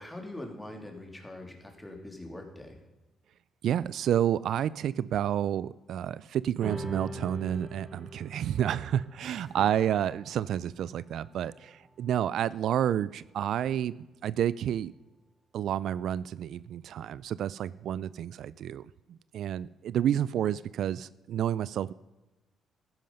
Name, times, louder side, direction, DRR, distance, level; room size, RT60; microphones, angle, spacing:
voice 1, 0.0-2.8 9.5-9.6, left 1 dB, 10° left, 3 dB, 3.0 m, -43 dB
voice 2, 3.6-14.0 14.2-14.9 15.5-21.9, right 10 dB, 75° right, 19 dB, 0.3 m, -30 dB
sound 1, 6.6-13.3, right 1 dB, 45° right, 3.2 m, -45 dB
13.5 x 10.5 x 5.4 m, 1.1 s
cardioid pair, 90°, 0 cm